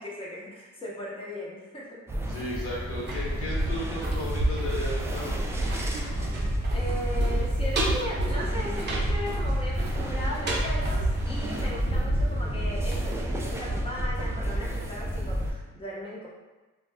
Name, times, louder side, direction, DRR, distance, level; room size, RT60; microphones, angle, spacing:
voice 1, 0.0-2.0 6.7-16.3, equal, 20° left, -5 dB, 0.8 m, -37 dB
sound 1, 2.1-15.5, equal, 10° right, 0.3 m, -30 dB
voice 2, 2.3-5.5, left 1 dB, 45° left, -7 dB, 1.1 m, -35 dB
sound 2, 2.8-13.7 14.0-14.1, right 1 dB, 35° right, 0.7 m, -32 dB
2.3 x 2.2 x 3.4 m, 1.2 s
cardioid pair, 90°, 30 cm